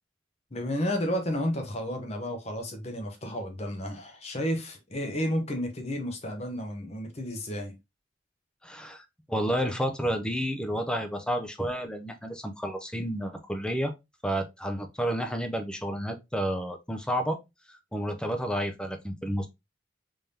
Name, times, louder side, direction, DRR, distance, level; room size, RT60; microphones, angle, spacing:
voice 1, 0.5-7.7, equal, 35° left, 0.9 m, -32 dB
voice 2, 8.6-13.9 14.2-17.4 17.7-19.5, equal, 5° left, 0.5 m, -31 dB
3.5 x 3.4 x 2.7 m
head